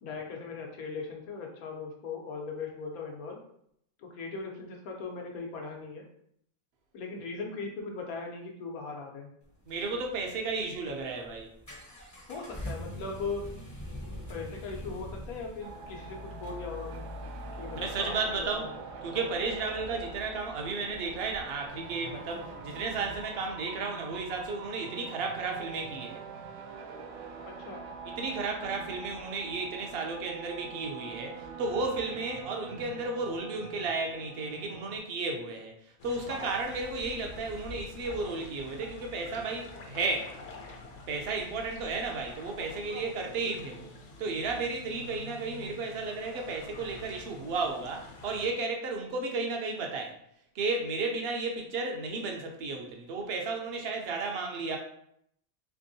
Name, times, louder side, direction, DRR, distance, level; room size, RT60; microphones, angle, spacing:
voice 1, 0.0-3.4 4.0-6.0 6.9-9.3 12.3-13.5 14.3-17.0 17.6-18.8 19.1-19.3 27.4-27.8 36.3-36.5 42.9-43.5, left 4 dB, 85° left, 1 dB, 1.3 m, -39 dB
sound 1, 9.4-23.3, left 1 dB, 20° left, 0.5 m, -45 dB
voice 2, 9.7-11.5 17.7-18.7 19.0-26.2 28.1-35.7 36.0-40.3 41.1-43.9 44.2-50.1 50.5-54.8, right 3 dB, 55° right, 2 dB, 0.8 m, -33 dB
sound 2, 15.6-35.0, right 4 dB, 75° right, 1.0 m, -44 dB
sound 3, 36.0-48.5, left 2 dB, 65° left, 0.9 m, -47 dB
3.5 x 3.5 x 2.7 m, 0.71 s
omnidirectional pair, 1.5 m